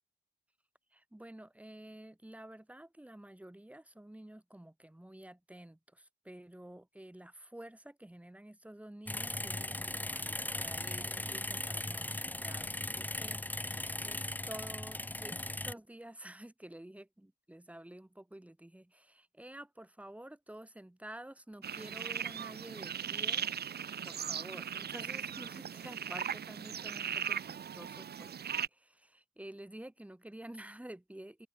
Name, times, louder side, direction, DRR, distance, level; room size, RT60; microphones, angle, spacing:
voice 1, 0.9-23.5 24.0-31.5, right 1 dB, 5° right, 7.5 m, -50 dB
sound 1, 9.1-15.7, left 1 dB, 10° left, 1.7 m, -38 dB
sound 2, 21.6-28.7, right 8 dB, 55° right, 3.1 m, -38 dB
cardioid pair, 90°, 20 cm